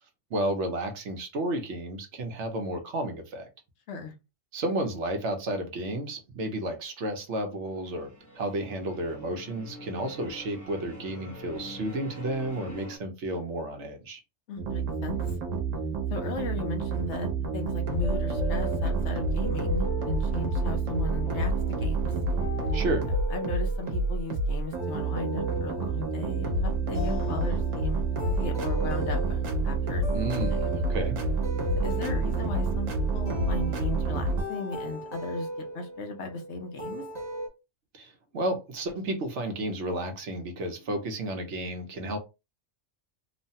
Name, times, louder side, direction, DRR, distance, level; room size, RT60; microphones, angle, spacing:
voice 1, 0.3-3.5 4.5-8.1 8.3-14.2 22.7-23.1 30.1-30.6 30.9-31.2 37.9-42.2, right 1 dB, 70° right, 4 dB, 1.0 m, -32 dB
sound 1, 7.7-13.0, left 1 dB, 20° left, 0.6 m, -45 dB
voice 2, 14.5-15.4 16.1-17.3 17.5-22.1 23.3-28.0 28.4-30.1 30.6-30.7 31.8-32.9 33.1-37.0, left 3 dB, 65° left, 5 dB, 0.9 m, -36 dB
sound 2, 14.6-34.4, right 3 dB, 90° right, 1.1 m, -28 dB
sound 3, 17.6-37.5, equal, 40° right, 0.7 m, -39 dB
3.1 x 2.1 x 2.7 m, 0.26 s
omnidirectional pair, 1.3 m